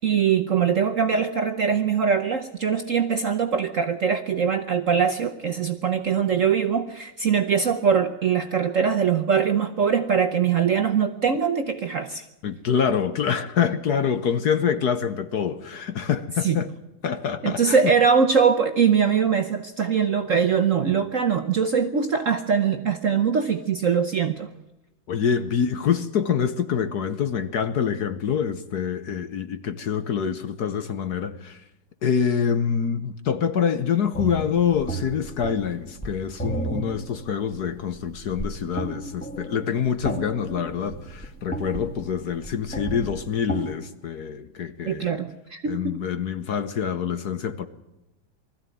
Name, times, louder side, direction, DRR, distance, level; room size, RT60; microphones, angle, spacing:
voice 1, 0.0-12.2 16.4-16.6 17.4-24.5 44.9-46.0, right 6 dB, 55° right, 0.9 m, -22 dB
voice 2, 12.4-16.7 17.0-17.9 25.1-31.6 32.0-45.2 45.7-47.7, left 7 dB, 55° left, 1.3 m, -26 dB
sound 1, 34.1-43.8, right 2 dB, 5° left, 2.3 m, -34 dB
20.5 x 14.5 x 9.2 m
omnidirectional pair, 2.3 m